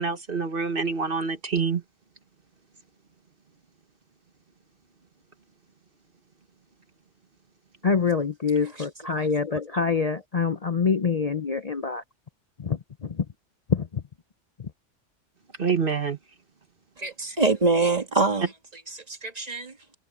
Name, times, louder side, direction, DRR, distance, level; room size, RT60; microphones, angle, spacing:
voice 1, 0.0-1.8 15.6-16.2, right 5 dB, 50° right, 1.6 m, -26 dB
voice 2, 7.8-12.0 12.6-13.3 13.7-14.0 14.6-14.7, left 5 dB, 35° left, 0.7 m, -26 dB
voice 3, 17.0-18.5 18.9-19.7, right 3 dB, 35° right, 2.1 m, -24 dB
omnidirectional pair, 1.3 m